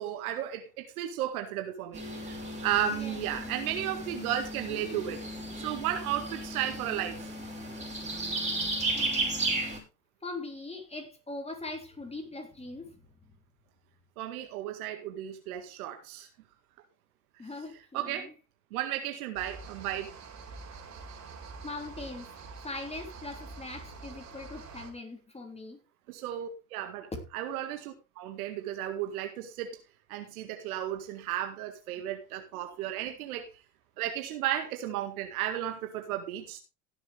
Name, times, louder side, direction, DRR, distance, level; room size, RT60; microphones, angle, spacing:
voice 1, 0.0-5.2 5.6-7.3 14.2-16.3 17.9-18.3 18.7-20.2 26.1-29.8 30.1-33.5 34.0-36.6, right 11 dB, 80° right, 2.0 m, -34 dB
sound 1, 1.9-9.8, right 2 dB, 15° right, 5.2 m, -34 dB
voice 2, 2.9-3.5 8.9-9.8 10.2-13.0 17.4-18.3 21.6-22.3 22.6-25.8 27.1-27.2, left 2 dB, 15° left, 3.3 m, -41 dB
sound 2, 19.3-24.9, right 4 dB, 40° right, 4.2 m, -46 dB
17.5 x 7.2 x 3.4 m
hypercardioid pair, 90°, 43 cm